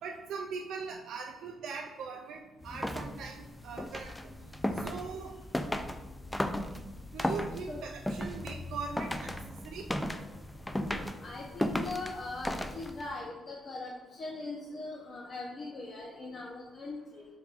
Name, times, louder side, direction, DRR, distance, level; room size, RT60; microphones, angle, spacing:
voice 1, 0.0-4.1 4.7-5.3 7.1-9.9, right 5 dB, 75° right, 1 dB, 0.3 m, -41 dB
sound 1, 2.6-13.1, left 1 dB, 10° left, 0.3 m, -36 dB
voice 2, 10.7-13.9 14.2-17.3, left 3 dB, 50° left, -2 dB, 0.7 m, -41 dB
4.6 x 3.5 x 2.4 m, 1.1 s
cardioid pair, 90°, 0 cm